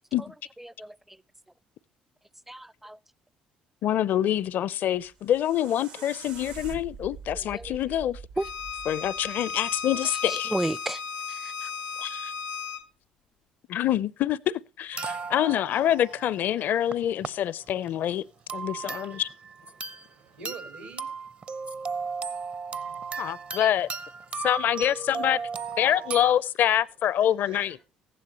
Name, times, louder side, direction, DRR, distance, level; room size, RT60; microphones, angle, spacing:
voice 1, 0.6-1.2 2.5-3.0 7.3-7.8 8.4-8.5 10.1-11.0 11.3-11.7 23.6-23.7, right 1 dB, 5° right, 0.5 m, -33 dB
voice 2, 3.8-8.2 8.9-10.5 12.0-12.3 13.7-18.3 18.5-19.3 23.2-23.9 24.4-25.4 25.8-27.8, left 11 dB, 60° left, 0.5 m, -26 dB
sound 1, 5.0-10.1, right 6 dB, 75° right, 1.3 m, -44 dB
Bowed string instrument, 8.4-12.8, left 6 dB, 85° left, 1.0 m, -35 dB
sound 2, 14.9-17.3 17.8-18.0 18.5-20.1 20.4-26.3, right 5 dB, 40° right, 0.7 m, -36 dB
voice 3, 15.7-16.7 17.3-19.3 19.6-21.1 22.2-23.4 24.2-24.5 27.2-27.8, right 4 dB, 90° right, 5.1 m, -50 dB
15.0 x 11.0 x 2.9 m
hypercardioid pair, 60°, 3 cm